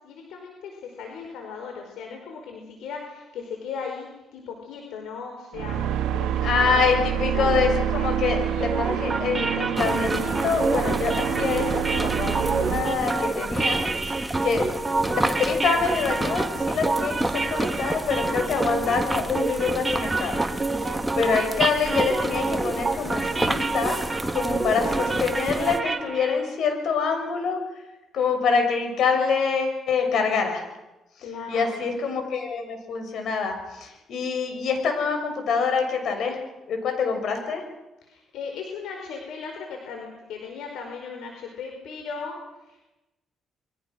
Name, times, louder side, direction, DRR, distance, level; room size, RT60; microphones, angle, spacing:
voice 1, 0.0-6.9 7.3-7.8 31.2-31.9 38.0-42.9, left 5 dB, 85° left, 2 dB, 4.8 m, -37 dB
sound 1, 5.5-12.8, right 10 dB, 85° right, 1.9 m, -27 dB
voice 2, 6.4-14.6 15.1-20.4 20.8-24.0 24.3-27.6 28.1-30.6 31.5-36.4 36.7-37.6, left 5 dB, 70° left, 5 dB, 6.7 m, -26 dB
sound 2, 8.6-26.5, right 3 dB, 25° right, 2.4 m, -28 dB
sound 3, 9.8-25.8, right 1 dB, 10° right, 1.8 m, -30 dB
28.5 x 23.0 x 6.4 m, 0.98 s
cardioid pair, 90°, 0 cm